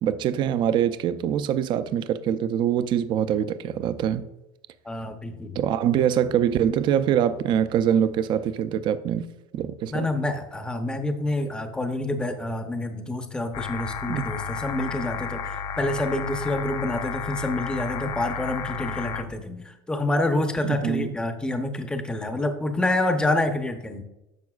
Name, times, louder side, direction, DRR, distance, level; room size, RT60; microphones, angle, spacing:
voice 1, 0.0-4.3 5.6-9.3 9.5-10.1 14.1-14.3 20.6-21.2, right 9 dB, 40° right, 0.5 m, -24 dB
voice 2, 4.9-5.6 9.9-24.0, left 1 dB, 5° left, 0.7 m, -27 dB
sound 1, 13.5-19.2, left 6 dB, 50° left, 0.6 m, -32 dB
11.0 x 6.9 x 2.4 m
cardioid pair, 145°, 12 cm